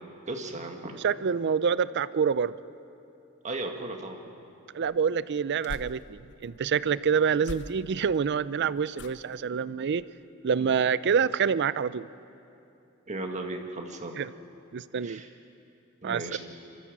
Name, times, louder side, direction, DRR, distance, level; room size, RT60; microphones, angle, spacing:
voice 1, 0.3-1.0 3.4-4.2 13.1-14.2 15.0-15.3 16.0-16.4, right 2 dB, 35° right, 3 dB, 1.7 m, -35 dB
voice 2, 1.0-2.6 4.7-10.0 10.4-12.1 14.2-14.3 14.7-15.2 16.0-16.3, right 6 dB, 55° right, 17 dB, 0.4 m, -26 dB
sound 1, 4.8-6.5 7.4-8.2 8.9-9.5 9.9-10.2 10.6-10.7, left 2 dB, 55° left, 0.8 m, -44 dB
27.0 x 14.0 x 7.3 m, 2.7 s
head